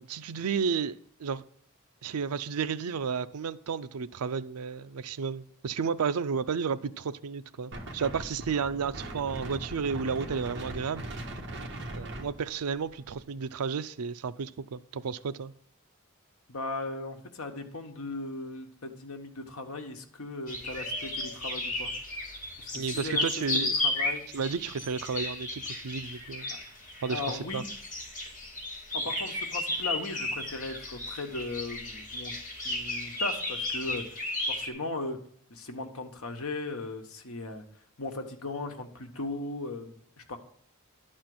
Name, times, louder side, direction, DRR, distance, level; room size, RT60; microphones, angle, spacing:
voice 1, 0.0-1.4 2.0-11.0 11.9-15.5 22.7-23.8 24.3-26.5 27.0-27.6, right 6 dB, 85° right, 0.5 m, -32 dB
Wind, 7.7-13.2, right 1 dB, 55° right, 1.4 m, -40 dB
voice 2, 16.5-21.9 22.6-23.2 23.5-24.2 26.5-26.6 27.1-27.7 28.9-32.3 32.6-34.0 34.5-35.2 35.5-37.6 38.0-40.4, left 2 dB, 75° left, 1.2 m, -37 dB
sound 1, 20.5-34.7, left 2 dB, 35° left, 2.4 m, -34 dB
11.5 x 4.3 x 7.8 m
head